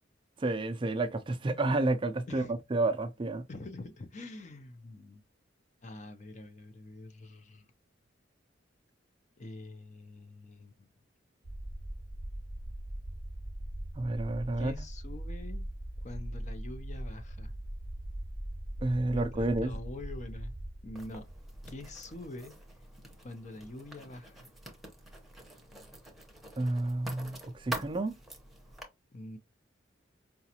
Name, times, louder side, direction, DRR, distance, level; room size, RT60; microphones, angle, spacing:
voice 1, 0.4-3.4 14.0-14.7 18.8-19.7 26.6-28.1, right 2 dB, 25° right, 0.4 m, -30 dB
voice 2, 3.5-5.2 5.8-7.7 9.4-10.7 14.6-15.7 16.0-17.5 19.1-20.6 20.8-21.3 21.7-22.6 23.2-24.5 29.1-29.4, left 2 dB, 40° left, 0.6 m, -45 dB
sound 1, 11.4-23.0, right 1 dB, 55° left, 1.1 m, -41 dB
Writing, 20.9-28.8, right 1 dB, ahead, 0.8 m, -46 dB
4.9 x 2.3 x 2.8 m
head